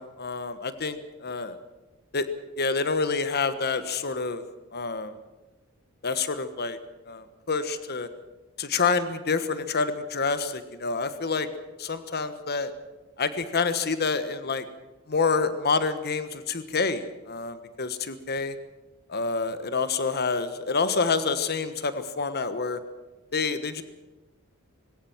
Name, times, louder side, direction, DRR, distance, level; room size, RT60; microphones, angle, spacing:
voice 1, 0.0-1.5 2.1-2.3 2.6-4.4 4.7-5.1 6.0-6.8 7.1-8.1 8.6-11.5 11.8-12.7 13.2-14.6 15.1-18.5 19.1-22.8 23.3-23.8, left 4 dB, 50° left, 11 dB, 1.4 m, -27 dB
20.5 x 17.5 x 7.3 m, 1.1 s
head